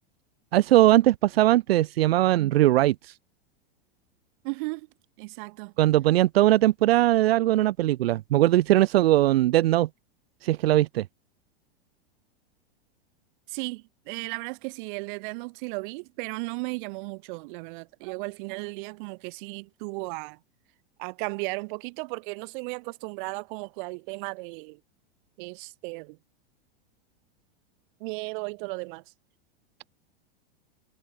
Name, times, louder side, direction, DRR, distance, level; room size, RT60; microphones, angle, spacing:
voice 1, 0.5-3.2 5.8-9.9 10.4-11.0, right 15 dB, 85° right, 0.9 m, -20 dB
voice 2, 4.4-4.9 5.2-5.7 13.5-20.4 21.0-24.8 25.4-26.2 28.0-29.0, right 28 dB, 55° right, 4.8 m, -35 dB
supercardioid pair, 140°, 30 cm